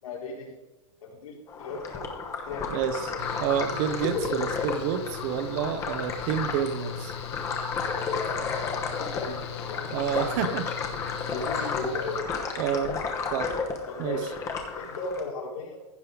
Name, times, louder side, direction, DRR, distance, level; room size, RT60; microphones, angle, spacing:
voice 1, 0.0-0.5 1.0-2.1 2.4-2.8 8.6-10.7 11.2-12.3 13.9-14.3 14.7-15.8, left 3 dB, 85° left, -2 dB, 3.5 m, -36 dB
sound 1, 1.5-15.2, left 5 dB, 15° left, 1.0 m, -32 dB
voice 2, 2.7-3.1 3.4-7.1 9.9-10.7 11.6-11.7 12.6-13.0 13.3-13.5 14.0-14.2, right 8 dB, 35° right, 11 dB, 0.8 m, -29 dB
Mechanical fan, 3.2-12.2, left 10 dB, 50° left, 1.0 m, -40 dB
15.5 x 5.5 x 3.8 m, 1.1 s
supercardioid pair, 160°, 18 cm